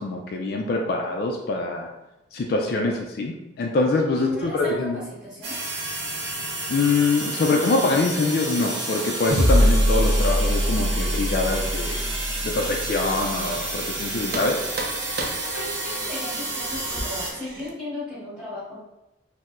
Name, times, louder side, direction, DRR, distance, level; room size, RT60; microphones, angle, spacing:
voice 1, 0.0-1.9 2.3-5.0 6.7-12.1 12.4-14.6, left 3 dB, 55° left, 1 dB, 0.3 m, -24 dB
voice 2, 4.2-5.6 15.4-18.8, left 2 dB, 5° right, -10 dB, 1.5 m, -34 dB
sound 1, 5.4-17.3, right 2 dB, 85° right, 0.8 m, -30 dB
sound 2, 9.3-13.9, equal, 35° right, 1.0 m, -23 dB
sound 3, 12.6-14.0 14.3-17.7, right 2 dB, 50° right, 0.5 m, -36 dB
4.3 x 2.0 x 2.5 m, 0.93 s
head